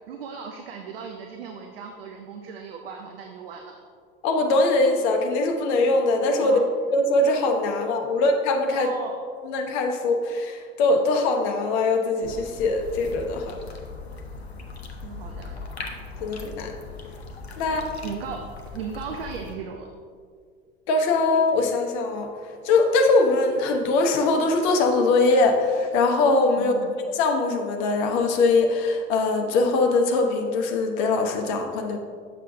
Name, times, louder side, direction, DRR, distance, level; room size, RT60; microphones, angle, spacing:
voice 1, 0.1-3.8 6.4-6.6 8.1-8.2 8.7-9.2 15.0-15.6 17.6-18.5 18.7-19.9 26.6-27.0, right 6 dB, 65° right, 4 dB, 0.6 m, -37 dB
voice 2, 4.2-6.6 6.9-8.9 9.4-13.6 16.2-16.7 17.6-17.8 20.9-22.3 22.6-26.7 27.1-32.0, left 3 dB, 50° left, 4 dB, 0.9 m, -22 dB
sound 1, 12.2-19.5, left 4 dB, 80° left, 0.7 m, -39 dB
7.5 x 6.4 x 2.7 m, 2.1 s
figure-of-eight pair, 70°, 31 cm